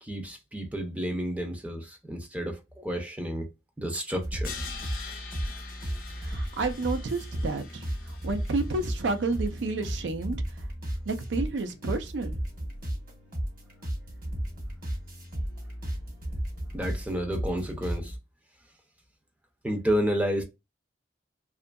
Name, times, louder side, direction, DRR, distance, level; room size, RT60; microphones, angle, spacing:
voice 1, 0.0-3.5 3.8-4.5 16.7-18.1 19.6-20.4, equal, 10° right, 0.5 m, -30 dB
sound 1, 4.2-18.2, equal, 50° right, 1.0 m, -34 dB
Crash cymbal, 4.4-9.5, left 6 dB, 50° left, 0.6 m, -44 dB
voice 2, 6.2-7.8 8.2-10.4 11.1-12.3, right 3 dB, 75° right, 0.4 m, -30 dB
2.6 x 2.4 x 2.2 m
head